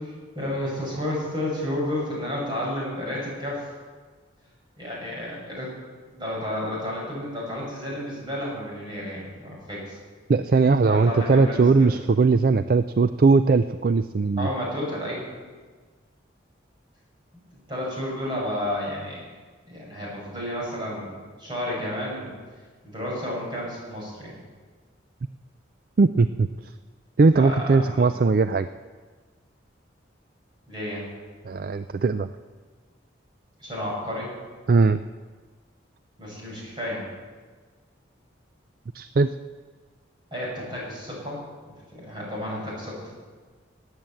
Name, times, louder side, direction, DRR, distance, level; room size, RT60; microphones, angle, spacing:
voice 1, 0.0-3.6 4.8-5.7 6.1-10.0 10.8-11.9 14.4-15.3 17.7-19.2 19.7-22.3 22.8-24.4 27.3-28.2 30.7-31.1 33.6-34.3 36.2-37.0 40.3-41.4 41.9-43.1, left 1 dB, 25° right, -4 dB, 6.6 m, -31 dB
voice 2, 10.3-14.5 26.0-26.5 27.2-28.7 31.4-32.3 34.7-35.0 38.9-39.3, right 4 dB, 50° right, 11 dB, 0.4 m, -19 dB
18.0 x 9.0 x 7.8 m, 1.5 s
head